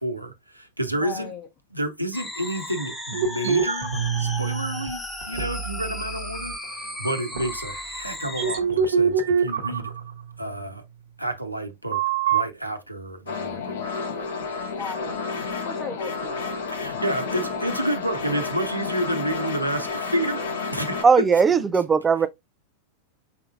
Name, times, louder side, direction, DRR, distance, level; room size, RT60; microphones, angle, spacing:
voice 1, 0.0-0.3 0.8-1.3 1.7-3.9 4.2-5.0 5.3-6.5 7.0-9.1 9.4-9.9 10.4-10.8 11.2-12.0 12.3-13.7 16.7-20.4 20.7-21.4 21.7-21.8, right 1 dB, 90° right, 0.8 m, -29 dB
voice 2, 1.0-1.5 14.7-15.2 15.6-16.6, left 5 dB, 30° left, 1.0 m, -36 dB
sound 1, 2.1-8.6, left 1 dB, 10° left, 1.0 m, -35 dB
sound 2, 3.1-4.9 5.2-6.2 6.6-6.7 7.3-7.5 8.2-10.8 11.9-12.4, right 7 dB, 60° right, 1.1 m, -25 dB
sound 3, 13.3-21.0, left 4 dB, 60° left, 1.3 m, -31 dB
voice 3, 21.0-22.3, right 5 dB, 15° right, 0.4 m, -18 dB
5.8 x 3.7 x 2.4 m
figure-of-eight pair, 90°, 0 cm